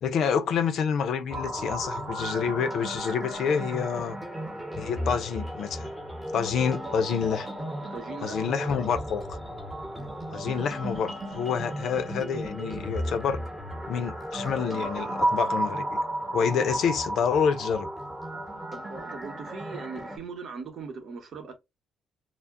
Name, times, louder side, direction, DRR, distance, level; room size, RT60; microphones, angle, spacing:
voice 1, 0.0-4.2 4.7-5.9 6.3-7.5 8.2-9.4 10.3-13.4 13.9-16.0 16.3-17.9, left 7 dB, 70° left, 0.4 m, -28 dB
sound 1, 1.3-20.2, right 1 dB, 10° right, 0.9 m, -34 dB
voice 2, 7.9-8.4 9.9-10.1 18.7-21.6, right 5 dB, 60° right, 0.9 m, -40 dB
2.2 x 2.0 x 3.5 m
cardioid pair, 90°, 0 cm